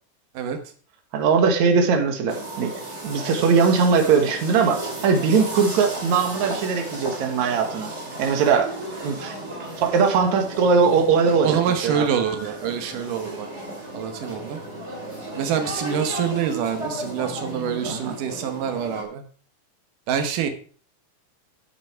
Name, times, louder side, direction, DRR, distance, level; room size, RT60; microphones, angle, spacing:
voice 1, 1.1-2.7 3.0-7.9 8.2-8.7 9.0-9.4 9.6-11.6 11.8-12.1 17.9-18.2, right 5 dB, 65° right, 4 dB, 2.8 m, -20 dB
sound 1, 2.3-19.0, right 1 dB, 20° right, 3.1 m, -34 dB
voice 2, 11.4-13.5 13.9-14.6 15.4-19.2 20.1-20.5, right 8 dB, 85° right, 6 dB, 2.8 m, -26 dB
13.5 x 8.0 x 4.5 m, 0.41 s
omnidirectional pair, 3.7 m